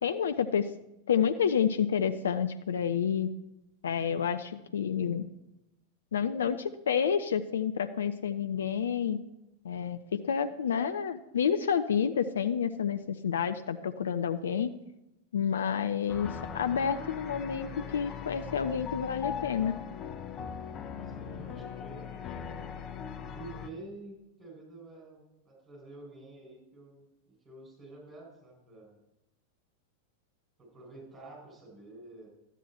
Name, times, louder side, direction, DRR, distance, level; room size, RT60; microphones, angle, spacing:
voice 1, 0.0-0.7 1.1-3.3 3.8-5.2 6.1-9.2 9.6-10.0 10.2-14.7 15.3-19.7, left 7 dB, 65° left, 10 dB, 0.5 m, -29 dB
voice 2, 13.3-13.7 21.0-22.3 23.3-29.0 30.6-32.3, right 2 dB, 15° right, -1 dB, 5.1 m, -49 dB
sound 1, 16.1-23.7, left 7 dB, 30° left, 0.8 m, -40 dB
12.5 x 9.1 x 4.3 m, 0.89 s
figure-of-eight pair, 90°, 0 cm